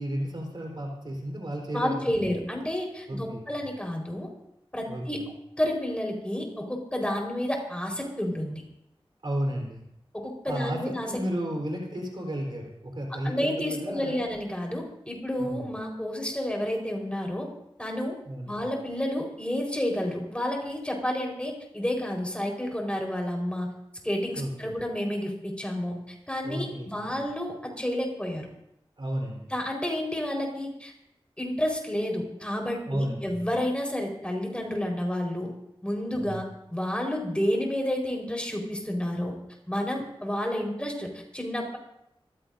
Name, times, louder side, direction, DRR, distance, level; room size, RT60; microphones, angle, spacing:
voice 1, 0.0-2.3 3.1-3.6 4.9-5.3 9.2-9.8 10.4-14.2 15.4-15.7 18.3-18.6 24.4-24.7 26.4-27.2 29.0-29.5 32.9-33.3 36.2-36.4, right 1 dB, 55° right, 1 dB, 3.9 m, -33 dB
voice 2, 1.7-4.3 4.7-5.2 5.6-8.6 10.1-11.1 13.1-17.5 17.8-18.1 18.5-23.7 24.0-28.5 29.5-30.9 31.4-35.5 35.8-36.4 36.7-39.3 39.7-41.8, left 1 dB, 10° left, 0 dB, 4.4 m, -30 dB
26.0 x 15.0 x 2.6 m, 0.79 s
wide cardioid pair, 60°, 10 cm